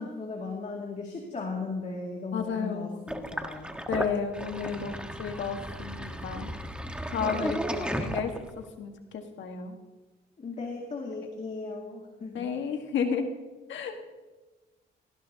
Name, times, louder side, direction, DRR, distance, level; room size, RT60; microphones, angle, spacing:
voice 1, 0.0-3.8 7.1-8.1 10.4-12.5, left 3 dB, 35° left, 0 dB, 2.3 m, -37 dB
voice 2, 2.3-3.0 3.9-6.5 7.1-9.8 12.3-13.3 13.7-13.9, left 6 dB, 70° left, 4 dB, 1.5 m, -32 dB
Sink (filling or washing), 3.1-8.7, equal, 5° right, 1.3 m, -34 dB
18.5 x 16.0 x 2.8 m, 1.2 s
cardioid pair, 90°, 20 cm